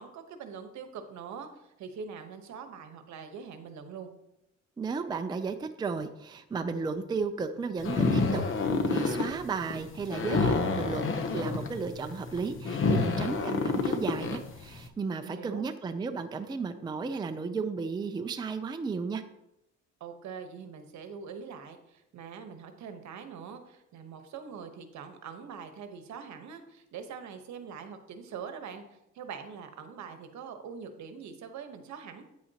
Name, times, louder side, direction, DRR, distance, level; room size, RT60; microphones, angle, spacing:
voice 1, 0.0-4.1 15.2-15.6 20.0-28.8 29.1-32.2, right 6 dB, 70° right, 7 dB, 1.1 m, -43 dB
voice 2, 4.8-8.4 8.9-19.2, right 4 dB, 15° right, 8 dB, 0.4 m, -34 dB
sound 1, 7.8-14.8, left 4 dB, 40° left, 0.8 m, -28 dB
9.2 x 8.4 x 2.9 m, 0.85 s
cardioid pair, 140°, 30 cm